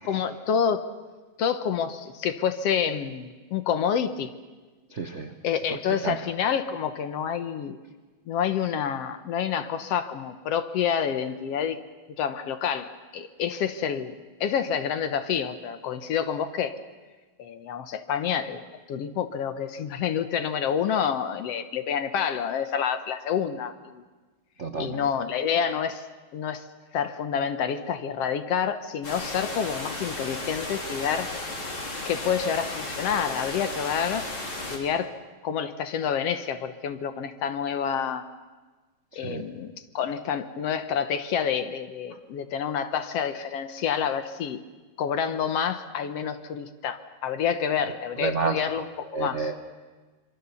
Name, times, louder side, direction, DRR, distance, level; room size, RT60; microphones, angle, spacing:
voice 1, 0.1-0.9 1.4-4.3 5.4-7.8 8.3-11.8 12.2-16.8 17.4-24.0 24.8-26.1 26.3-26.7 26.9-31.3 32.0-34.3 34.7-35.1 35.4-38.3 39.2-44.6 45.0-49.5, left 8 dB, 65° left, 10 dB, 1.9 m, -28 dB
voice 2, 4.9-5.3 5.7-5.8 6.0-6.2 24.6-25.1 39.1-39.5 48.2-48.6 49.1-49.6, right 4 dB, 70° right, 5 dB, 0.6 m, -30 dB
sound 1, 29.0-34.8, left 2 dB, 45° left, 4.5 m, -34 dB
26.0 x 24.0 x 7.0 m, 1.3 s
omnidirectional pair, 3.3 m